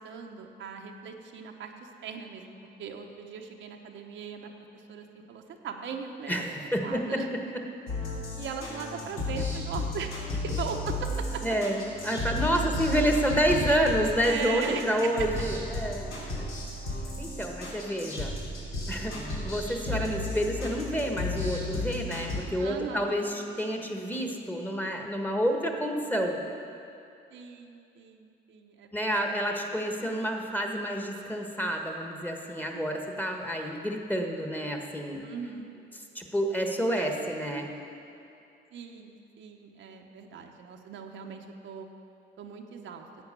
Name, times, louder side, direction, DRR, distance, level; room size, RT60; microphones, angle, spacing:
voice 1, 0.0-6.4 6.8-7.3 8.4-11.4 12.4-12.7 14.2-15.1 16.2-16.5 17.7-18.0 22.6-23.6 27.3-29.3 35.2-35.7 38.7-41.9 42.4-43.1, right 6 dB, 75° right, 3 dB, 1.0 m, -39 dB
voice 2, 6.3-7.6 11.4-16.4 17.2-18.3 18.9-19.2 19.4-26.4 28.9-35.2 36.1-37.7, equal, 10° left, 2 dB, 1.4 m, -29 dB
sound 1, 7.9-22.4, left 2 dB, 90° left, 3.1 m, -34 dB
10.5 x 8.0 x 6.8 m, 2.6 s
cardioid pair, 90°, 20 cm